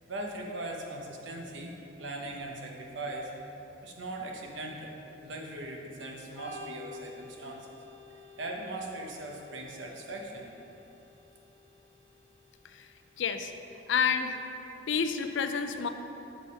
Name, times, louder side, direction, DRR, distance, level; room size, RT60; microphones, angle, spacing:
voice 1, 0.1-1.7 2.0-3.3 3.8-7.8 8.4-10.5, right 2 dB, 70° right, 0 dB, 1.0 m, -39 dB
Organ, 6.3-13.8, left 4 dB, 15° left, 0.8 m, -52 dB
voice 2, 13.2-13.5 13.9-14.4 14.9-15.9, left 6 dB, 70° left, 8 dB, 0.4 m, -28 dB
6.2 x 5.7 x 5.4 m, 3.0 s
head